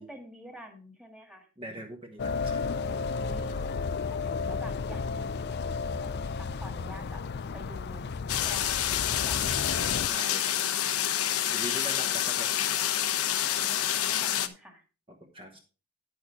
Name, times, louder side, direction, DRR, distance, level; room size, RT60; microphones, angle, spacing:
voice 1, 0.0-1.5 3.2-3.6 4.1-7.2 7.5-8.1 8.4-9.9 13.5-14.8, equal, 5° right, 2 dB, 1.9 m, -48 dB
voice 2, 1.6-2.7 3.5-3.6 10.0-10.8 11.0-12.5 15.2-15.6, equal, 25° right, 0 dB, 1.2 m, -42 dB
sound 1, 2.2-10.1, left 4 dB, 45° left, 0.4 m, -33 dB
sound 2, 8.3-14.5, left 11 dB, 80° left, 0.8 m, -28 dB
9.8 x 6.4 x 4.7 m, 0.36 s
head